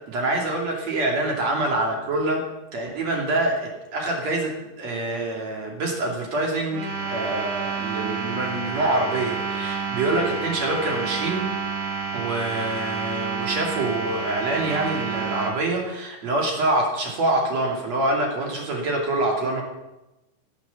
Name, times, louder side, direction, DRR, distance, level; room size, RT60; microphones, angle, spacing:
voice 1, 0.1-2.4 2.7-11.4 12.1-19.6, right 2 dB, 40° right, 0 dB, 3.3 m, -25 dB
sound 1, 6.7-15.5, right 5 dB, 80° right, 5.3 m, -29 dB
16.5 x 8.0 x 7.2 m, 0.98 s
omnidirectional pair, 5.2 m